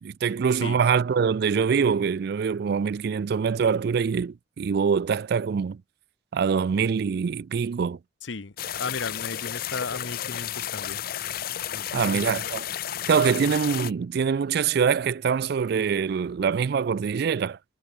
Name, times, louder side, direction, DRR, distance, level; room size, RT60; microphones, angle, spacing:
voice 1, 0.0-5.8 6.3-8.0 11.9-12.6 13.1-17.6, right 6 dB, 55° right, 0.3 m, -24 dB
voice 2, 8.2-11.0 11.7-12.4, left 4 dB, 70° left, 1.0 m, -35 dB
sound 1, 8.6-13.9, left 11 dB, 50° left, 0.5 m, -32 dB
head